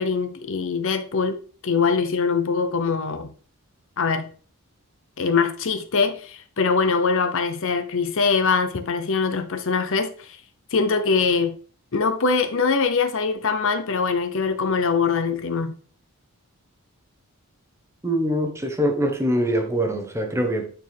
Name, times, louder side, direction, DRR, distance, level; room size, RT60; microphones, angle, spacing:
voice 1, 0.0-1.4 1.6-3.3 4.0-4.3 5.2-10.4 10.7-11.6 11.9-15.8, left 5 dB, 60° left, 0.8 m, -23 dB
voice 2, 18.0-20.7, equal, 10° right, 1.0 m, -23 dB
9.0 x 4.5 x 3.4 m
head